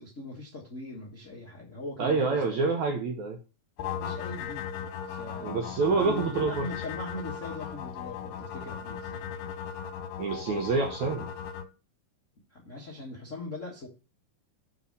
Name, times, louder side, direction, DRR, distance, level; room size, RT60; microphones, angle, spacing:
voice 1, 0.0-2.6 4.0-4.7 5.1-9.3 12.5-13.9, left 2 dB, 45° left, -1 dB, 0.9 m, -41 dB
voice 2, 2.0-3.4 5.4-6.7 10.2-11.3, right 4 dB, 70° right, 4 dB, 1.9 m, -27 dB
sound 1, 3.8-11.6, left 8 dB, 90° left, 2.8 m, -37 dB
7.0 x 4.2 x 6.6 m, 0.31 s
omnidirectional pair, 4.4 m